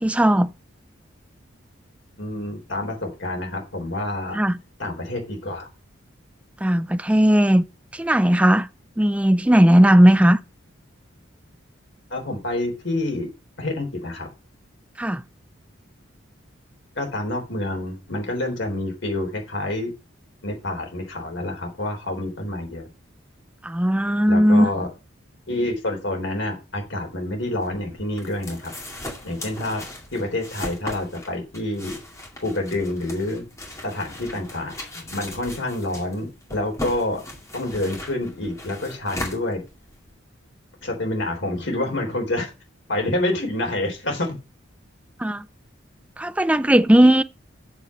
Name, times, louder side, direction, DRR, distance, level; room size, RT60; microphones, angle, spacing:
voice 1, 0.0-0.5 4.3-4.6 6.6-7.6 7.9-8.7 9.0-10.4 15.0-15.2 23.6-24.7 45.2-45.4 46.2-47.2, equal, 5° right, 0.4 m, -17 dB
voice 2, 2.2-4.4 4.8-5.7 12.1-13.3 13.6-14.3 17.0-19.9 20.4-22.9 24.3-24.9 25.5-28.7 29.2-29.8 30.1-32.0 32.4-33.5 33.8-37.2 37.5-39.6 40.8-42.5 42.9-44.4, left 1 dB, 65° left, 3.7 m, -28 dB
sound 1, 27.6-40.1, left 1 dB, 15° left, 2.3 m, -38 dB
7.1 x 6.8 x 6.4 m
head